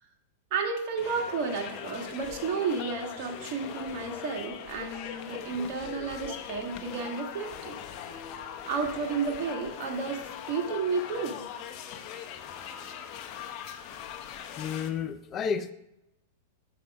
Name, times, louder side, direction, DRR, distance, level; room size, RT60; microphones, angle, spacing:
voice 1, 0.5-7.8 8.6-11.5, right 5 dB, 50° right, 2 dB, 1.7 m, -32 dB
sound 1, 1.0-14.9, left 9 dB, 45° left, 0.8 m, -41 dB
voice 2, 14.6-15.7, left 6 dB, 30° left, 11 dB, 0.4 m, -31 dB
6.8 x 5.3 x 4.8 m, 0.84 s
hypercardioid pair, 130°, 0 cm